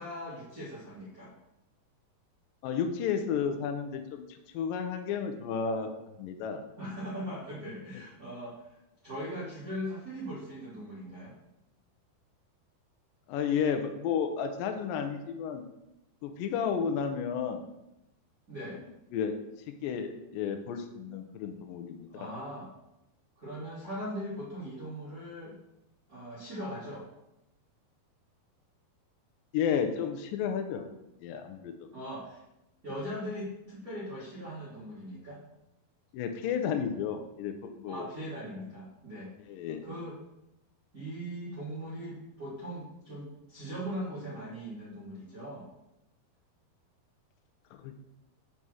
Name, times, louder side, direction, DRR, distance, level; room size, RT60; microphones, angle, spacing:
voice 1, 0.0-1.3 6.8-8.6 9.0-11.3 18.5-18.8 22.1-22.7 23.4-25.6 26.1-27.1 31.9-32.4 32.8-35.4 37.9-39.3 39.8-40.2 40.9-45.7, equal, 45° right, -8 dB, 1.1 m, -40 dB
voice 2, 2.6-4.2 4.5-6.6 13.3-15.6 16.2-17.6 19.1-19.3 19.7-22.3 29.5-30.9 31.2-31.7 36.1-38.1 38.6-38.7 39.5-39.8 47.7-47.9, left 7 dB, 80° left, 6 dB, 2.0 m, -32 dB
5.5 x 4.8 x 6.1 m, 0.89 s
omnidirectional pair, 4.6 m